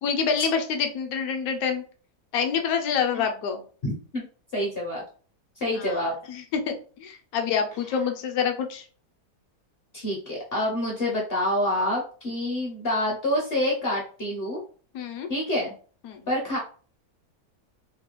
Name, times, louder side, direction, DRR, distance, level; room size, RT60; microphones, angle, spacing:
voice 1, 0.0-1.8 2.3-3.6 5.8-5.9 6.5-8.8 14.9-15.3 16.0-16.3, left 6 dB, 70° left, 4 dB, 1.0 m, -27 dB
voice 2, 3.8-4.3 4.5-5.0 5.6-6.1 7.9-8.0 9.9-14.6 15.3-15.7 16.3-16.6, left 1 dB, 50° left, -2 dB, 0.7 m, -27 dB
3.2 x 2.3 x 2.9 m, 0.40 s
omnidirectional pair, 1.7 m